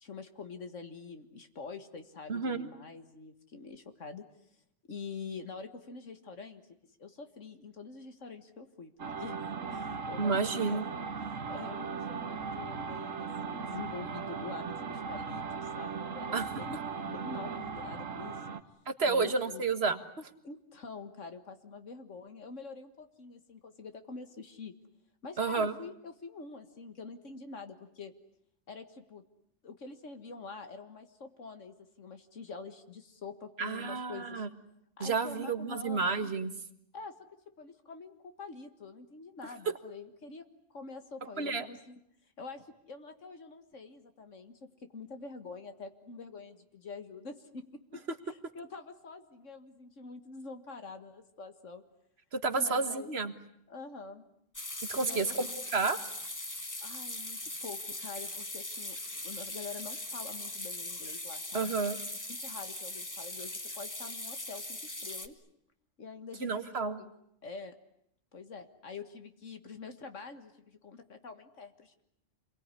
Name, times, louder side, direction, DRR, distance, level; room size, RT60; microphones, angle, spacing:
voice 1, 0.0-4.2 4.9-6.6 7.0-9.4 9.7-10.9 11.3-18.4 19.0-19.6 20.4-24.7 25.2-28.1 28.7-29.2 29.6-34.5 35.0-36.2 36.9-37.1 37.6-40.4 40.7-42.0 42.4-47.6 47.9-51.8 52.5-53.1 53.7-54.2 55.0-55.6 56.8-61.8 62.3-65.4 66.0-67.1 67.4-67.7 68.3-72.0, left 4 dB, 75° left, 7 dB, 2.0 m, -46 dB
voice 2, 2.3-2.7 10.2-10.9 16.3-16.5 18.9-20.3 25.4-25.7 33.6-34.5 35.0-36.5 41.4-41.7 52.3-53.3 54.9-56.0 61.5-62.0 66.4-67.0, right 4 dB, 55° right, 9 dB, 1.9 m, -31 dB
sound 1, 9.0-18.6, right 5 dB, 90° right, 1.7 m, -38 dB
sound 2, 54.5-65.3, left 2 dB, 15° left, 1.3 m, -40 dB
27.5 x 22.0 x 9.8 m, 0.74 s
omnidirectional pair, 1.3 m